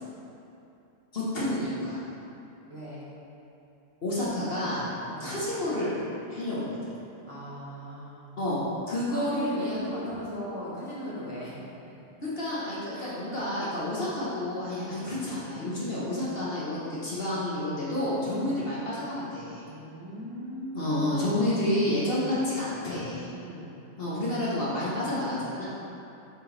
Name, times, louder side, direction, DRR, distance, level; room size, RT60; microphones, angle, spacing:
voice 1, 1.1-2.0 4.0-4.9 5.2-6.0 6.3-6.7 8.4-9.8 12.2-19.6 20.7-23.3 24.0-25.7, left 1 dB, 50° left, -8 dB, 1.3 m, -29 dB
voice 2, 2.7-3.1 5.0-5.3 7.2-8.3 9.1-11.9 12.9-13.1 14.8-15.1 18.3-18.5 19.6-21.2 23.3-23.8, equal, 25° right, -10 dB, 1.4 m, -39 dB
7.9 x 4.5 x 3.3 m, 2.7 s
omnidirectional pair, 1.4 m